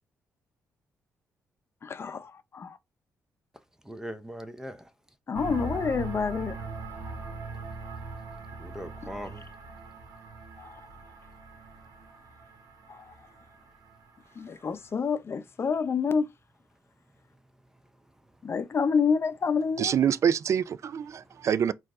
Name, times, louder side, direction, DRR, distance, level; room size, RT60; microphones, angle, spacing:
voice 1, 1.8-2.8 5.3-6.6 10.6-10.8 12.9-13.1 14.4-16.3 18.4-19.9, left 5 dB, 45° left, 0.6 m, -28 dB
voice 2, 3.8-4.9 8.6-9.4 21.2-21.4 21.7-21.8, equal, 10° right, 0.6 m, -40 dB
sound 1, 5.3-14.9, right 3 dB, 80° right, 1.0 m, -41 dB
voice 3, 19.8-21.7, right 8 dB, 55° right, 0.4 m, -25 dB
4.4 x 2.5 x 3.7 m
cardioid pair, 80°, 6 cm